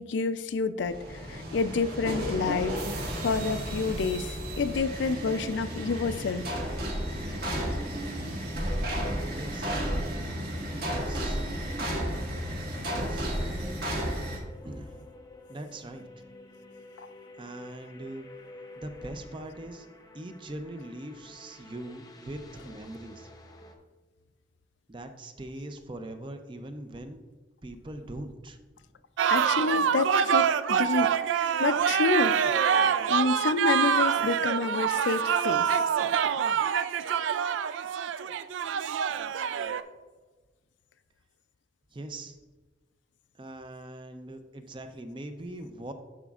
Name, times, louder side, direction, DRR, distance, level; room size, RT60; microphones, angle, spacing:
voice 1, 0.0-2.8 3.2-6.4 17.0-17.1 29.3-31.2 31.6-32.8 33.1-35.7, left 4 dB, 75° left, 13 dB, 0.4 m, -29 dB
sound 1, 0.8-14.4, equal, 55° right, 1.6 m, -33 dB
sound 2, 4.5-23.8, left 1 dB, 20° left, 0.6 m, -51 dB
voice 2, 9.3-9.9 10.8-11.4 13.1-13.3 14.6-15.1 15.5-16.1 17.4-18.3 18.8-19.9 20.1-23.3 24.9-27.2 27.6-28.6 41.9-42.4 43.4-45.9, right 1 dB, 25° right, 7 dB, 0.5 m, -41 dB
sound 3, 29.2-39.8, right 8 dB, 80° right, 0.3 m, -26 dB
11.0 x 6.0 x 2.4 m, 1.3 s
head